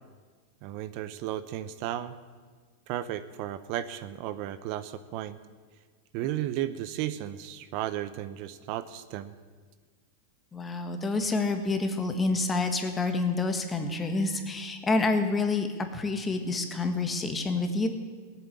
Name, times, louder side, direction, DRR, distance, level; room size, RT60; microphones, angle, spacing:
voice 1, 0.6-2.1 2.9-5.4 6.1-9.3, right 12 dB, 50° right, 13 dB, 0.7 m, -34 dB
voice 2, 10.5-17.9, left 3 dB, 15° left, 6 dB, 1.6 m, -28 dB
17.5 x 8.8 x 8.3 m, 1.5 s
hypercardioid pair, 130°, 0 cm